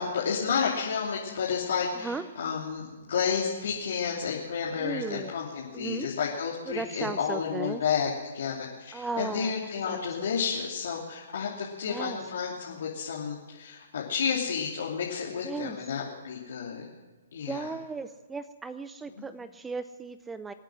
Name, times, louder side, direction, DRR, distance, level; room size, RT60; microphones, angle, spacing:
voice 1, 0.0-16.8 17.3-17.7 19.1-19.2, left 6 dB, 70° left, -3 dB, 2.8 m, -31 dB
voice 2, 4.8-5.3 5.7-6.1 6.7-7.8 8.9-10.3 11.8-12.2 15.4-15.8 17.5-20.5, right 4 dB, 10° right, 13 dB, 0.5 m, -36 dB
25.5 x 9.0 x 6.3 m, 1.3 s
hypercardioid pair, 135°, 0 cm